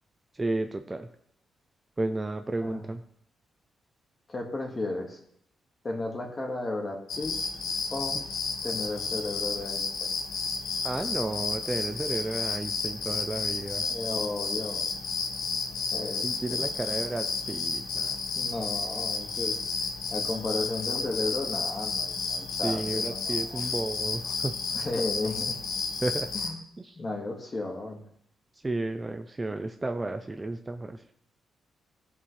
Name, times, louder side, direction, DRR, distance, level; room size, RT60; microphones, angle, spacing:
voice 1, 0.3-1.1 2.0-3.0 10.8-13.8 16.2-18.1 22.6-24.5 26.0-26.3 26.8-26.9 28.6-31.0, right 2 dB, 20° right, 7 dB, 0.5 m, -32 dB
voice 2, 4.3-5.2 5.8-7.3 7.9-8.2 8.6-10.1 13.8-14.9 15.9-16.7 18.4-19.6 20.1-23.6 24.7-25.6 26.3-26.6 27.0-28.0, left 2 dB, 30° left, 1 dB, 1.8 m, -34 dB
sound 1, 7.1-26.5, left 5 dB, 85° left, 1.2 m, -32 dB
15.0 x 5.4 x 3.3 m, 0.69 s
cardioid pair, 115°, 0 cm